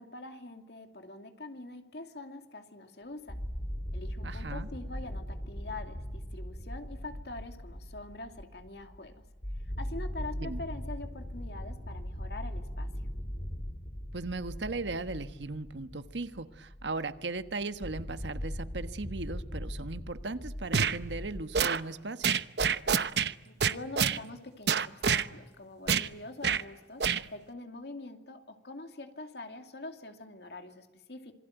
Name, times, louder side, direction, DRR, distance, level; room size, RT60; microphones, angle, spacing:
voice 1, 0.0-3.4 3.9-9.2 9.8-12.9 23.5-31.3, left 2 dB, 65° left, 6 dB, 2.6 m, -44 dB
sound 1, 3.3-21.4, equal, 35° left, 2.9 m, -40 dB
voice 2, 4.2-4.7 10.4-10.6 14.1-22.3, right 3 dB, 90° right, 11 dB, 1.3 m, -37 dB
sound 2, 20.7-21.0 21.5-21.8 22.2-23.3 23.6-24.2 24.7-25.3 25.9-26.1 26.4-26.6 27.0-27.2, right 6 dB, 70° right, 0.9 m, -26 dB
27.0 x 22.5 x 9.2 m, 1.1 s
head